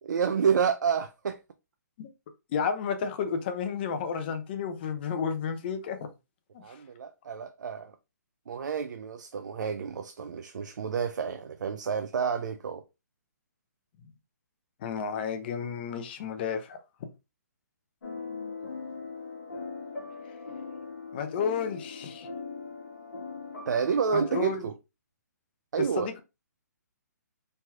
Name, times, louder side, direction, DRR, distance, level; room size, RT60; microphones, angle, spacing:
voice 1, 0.0-1.4 6.6-7.9 8.5-12.8 23.7-24.7 25.7-26.1, right 6 dB, 80° right, 0.3 m, -29 dB
voice 2, 2.5-6.0 6.5-6.6 14.8-16.8 21.1-22.3 24.1-24.6 26.0-26.2, left 6 dB, 35° left, 0.5 m, -31 dB
sound 1, 18.0-24.4, left 4 dB, 75° left, 0.9 m, -40 dB
3.2 x 2.9 x 2.3 m
hypercardioid pair, 155°, 10 cm